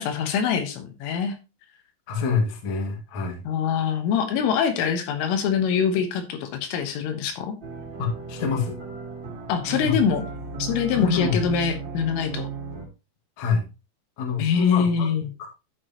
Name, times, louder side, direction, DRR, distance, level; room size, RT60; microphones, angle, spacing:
voice 1, 0.0-1.4 3.5-7.6 9.5-10.3 10.6-12.5 14.4-15.3, left 7 dB, 80° left, 6 dB, 3.7 m, -24 dB
voice 2, 2.1-3.4 8.0-8.8 9.8-10.0 10.9-11.4 13.4-13.6 14.2-15.1 15.4-15.5, left 5 dB, 50° left, 2 dB, 2.5 m, -26 dB
sound 1, 7.6-12.9, right 4 dB, 30° right, 2.4 m, -35 dB
11.5 x 7.1 x 2.9 m, 0.27 s
omnidirectional pair, 5.9 m